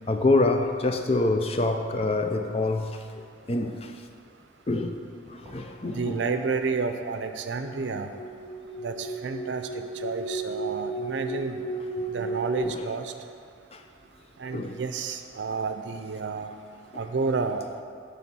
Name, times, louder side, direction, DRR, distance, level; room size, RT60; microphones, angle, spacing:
voice 1, 0.1-3.9 4.7-5.0 5.3-6.2 12.6-12.8 13.7-13.8 14.5-14.8 16.9-17.0, left 2 dB, 35° left, 0.4 m, -26 dB
sound 1, 5.4-5.5 6.3-12.6, right 3 dB, 20° right, 1.7 m, -35 dB
voice 2, 5.8-8.1 8.8-11.6 12.1-13.1 14.4-16.5 17.0-17.7, right 4 dB, 90° right, 0.5 m, -30 dB
9.3 x 3.5 x 6.0 m
head